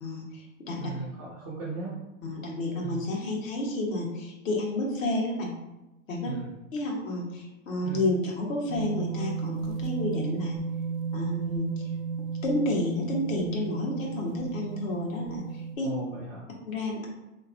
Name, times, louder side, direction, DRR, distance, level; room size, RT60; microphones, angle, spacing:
voice 1, 0.0-0.9 2.2-5.5 6.1-6.3 6.7-10.6 11.1-11.9 12.4-15.9 16.7-17.1, left 2 dB, 80° left, -1 dB, 1.3 m, -30 dB
voice 2, 0.8-1.9 2.8-3.0 6.2-6.5 7.8-8.0 15.8-16.5, right 4 dB, 15° right, -6 dB, 0.3 m, -37 dB
sound 1, 8.7-15.8, right 6 dB, 70° right, 0.6 m, -34 dB
3.5 x 2.9 x 2.5 m, 0.99 s
hypercardioid pair, 145°, 39 cm